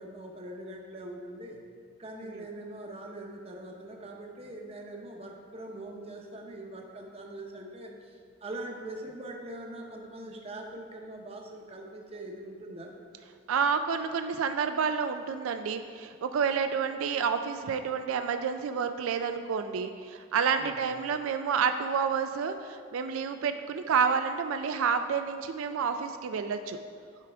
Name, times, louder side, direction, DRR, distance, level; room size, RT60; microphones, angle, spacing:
voice 1, 0.0-1.6 2.0-12.9 20.6-20.9, right 1 dB, 30° right, 1 dB, 0.8 m, -42 dB
voice 2, 13.5-26.8, right 6 dB, 85° right, 8 dB, 0.4 m, -29 dB
11.0 x 5.0 x 3.4 m, 2.2 s
head